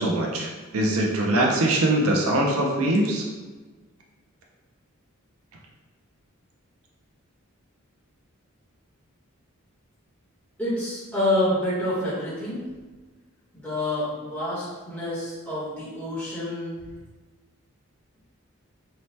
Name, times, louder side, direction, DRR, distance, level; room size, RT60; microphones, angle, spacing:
voice 1, 0.0-3.2, right 1 dB, 80° right, -1 dB, 0.5 m, -22 dB
voice 2, 10.6-12.6 13.5-16.8, left 1 dB, 5° left, -10 dB, 0.9 m, -27 dB
2.7 x 2.1 x 3.1 m, 1.3 s
head